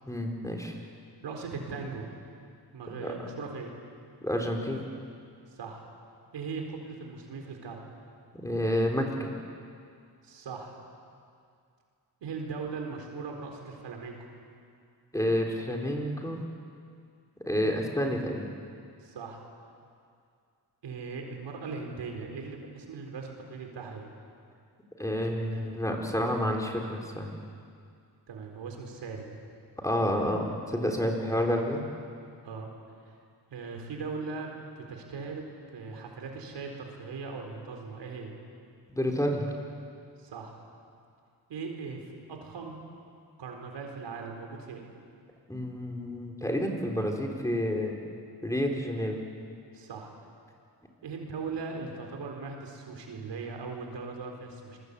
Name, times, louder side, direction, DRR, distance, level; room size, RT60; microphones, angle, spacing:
voice 1, 0.1-0.7 3.0-3.1 4.2-4.8 8.3-9.3 15.1-16.4 17.5-18.5 25.0-27.3 29.8-31.8 38.9-39.5 45.5-48.0 48.4-49.2, equal, 10° left, 1 dB, 4.1 m, -29 dB
voice 2, 1.2-2.1 2.7-3.7 5.5-5.9 6.3-7.8 10.2-10.8 12.2-14.3 19.0-19.4 20.8-24.1 28.3-29.3 30.9-31.0 32.4-32.7 33.5-35.5 35.7-38.3 40.2-40.6 41.5-42.0 42.3-42.8 43.4-44.8 49.7-50.1 51.0-54.8, right 4 dB, 90° right, 2 dB, 4.3 m, -39 dB
27.0 x 22.0 x 8.4 m, 2.3 s
cardioid pair, 85°, 41 cm